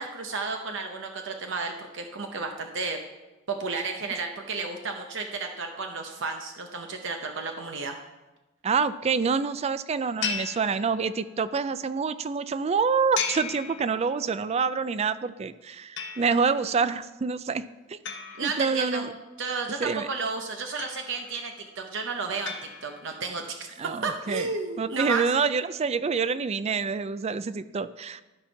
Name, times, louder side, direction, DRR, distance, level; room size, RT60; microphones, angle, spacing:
voice 1, 0.0-3.0 3.5-7.9 18.4-19.0 19.4-25.2, right 4 dB, 65° right, 4 dB, 0.8 m, -32 dB
voice 2, 8.6-18.0 18.4-19.1 19.8-20.1 23.8-24.5 24.8-28.2, right 5 dB, 30° right, 14 dB, 0.4 m, -27 dB
sound 1, 10.2-11.4 13.2-14.4 16.0-16.7 18.1-19.2 20.8-21.5 22.5-23.3, left 7 dB, 60° left, 0.9 m, -36 dB
13.0 x 4.4 x 5.8 m, 1.1 s
head